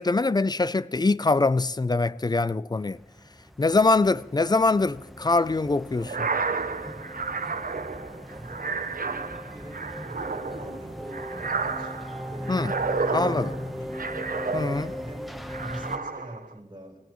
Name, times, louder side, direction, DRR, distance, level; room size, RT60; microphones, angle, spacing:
voice 1, 0.0-3.0 3.6-6.3 12.5-12.7 13.1-13.5 14.5-14.9, left 3 dB, 30° left, 0.4 m, -23 dB
sound 1, 2.8-16.0, equal, ahead, 1.1 m, -39 dB
sound 2, 6.0-15.1 15.5-16.5, right 4 dB, 80° right, 0.7 m, -31 dB
voice 2, 8.3-13.9 14.6-17.0, right 1 dB, 35° right, 4.1 m, -44 dB
23.0 x 16.5 x 3.1 m
wide cardioid pair, 70°, 14 cm